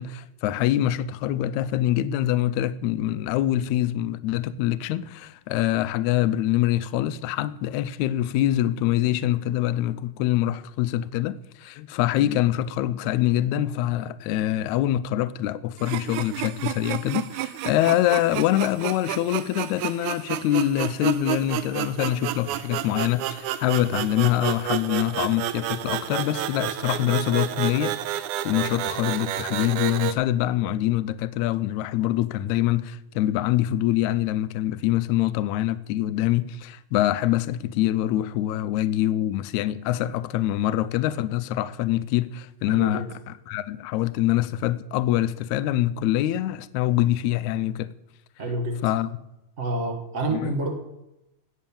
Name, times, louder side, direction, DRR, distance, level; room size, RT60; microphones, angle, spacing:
voice 1, 0.0-47.9 48.8-49.2 50.3-50.5, left 13 dB, 75° left, 1.8 m, -25 dB
sound 1, 15.8-30.1, right 13 dB, 80° right, 2.1 m, -30 dB
voice 2, 42.7-43.1 48.4-48.8 49.6-50.7, right 2 dB, 55° right, 0.8 m, -28 dB
18.0 x 7.5 x 7.0 m
omnidirectional pair, 3.7 m